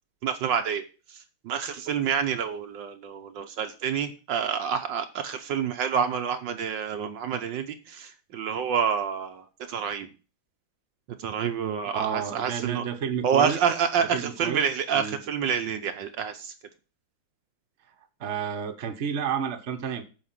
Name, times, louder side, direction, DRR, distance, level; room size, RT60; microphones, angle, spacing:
voice 1, 0.2-10.1 11.2-12.8 13.2-16.5, right 7 dB, 70° right, 7 dB, 1.4 m, -28 dB
voice 2, 11.9-13.6 14.0-14.7 14.9-15.2 18.2-20.0, right 7 dB, 40° right, 6 dB, 1.2 m, -31 dB
8.5 x 5.1 x 7.4 m, 0.34 s
omnidirectional pair, 2.2 m